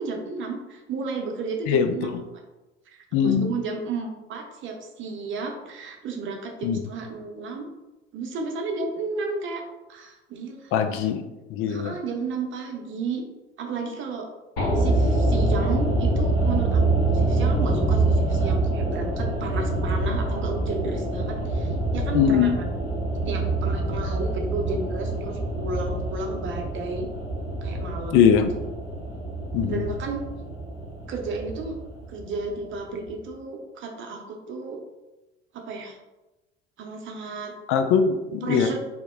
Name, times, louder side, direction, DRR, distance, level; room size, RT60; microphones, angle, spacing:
voice 1, 0.0-2.2 2.9-3.0 3.2-7.7 8.1-9.6 9.9-10.8 11.7-13.2 13.6-14.3 14.8-22.8 23.3-27.1 27.6-28.4 29.7-30.2 31.1-31.8 32.1-34.8 35.5-36.0 36.8-37.5 38.4-38.8, right 4 dB, 40° right, 2 dB, 0.7 m, -33 dB
voice 2, 1.7-2.1 3.1-3.5 6.6-6.8 10.7-11.2 11.5-12.0 22.1-22.5 28.1-28.5 29.5-29.8 37.7-38.7, left 7 dB, 40° left, 7 dB, 0.4 m, -21 dB
sound 1, 14.6-32.8 33.0-33.1, right 2 dB, 65° left, 1.1 m, -25 dB
2.9 x 2.1 x 3.5 m, 1.0 s
figure-of-eight pair, 65°, 32 cm